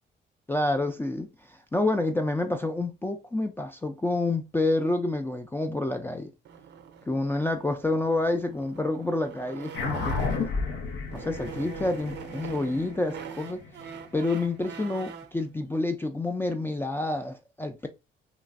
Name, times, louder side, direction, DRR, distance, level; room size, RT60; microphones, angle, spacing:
voice 1, 0.5-6.3 7.1-10.5 11.1-13.6 14.1-17.9, left 2 dB, 10° left, 0.3 m, -28 dB
sound 1, 6.4-10.7 11.1-15.4, right 7 dB, 60° right, 0.5 m, -43 dB
sound 2, 9.7-14.5, left 4 dB, 80° left, 0.7 m, -33 dB
3.0 x 2.4 x 2.4 m
cardioid pair, 90°, 20 cm